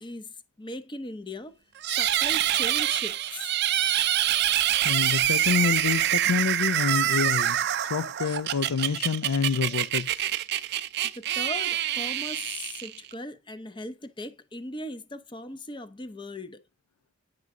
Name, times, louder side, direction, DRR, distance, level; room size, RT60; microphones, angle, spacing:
voice 1, 0.0-1.5 1.9-3.6 11.1-16.6, left 1 dB, 20° left, 0.6 m, -38 dB
sound 1, 1.8-13.1, right 12 dB, 45° right, 0.4 m, -26 dB
voice 2, 4.8-7.6 7.9-10.2, left 6 dB, 80° left, 0.4 m, -27 dB
9.5 x 6.2 x 3.6 m
head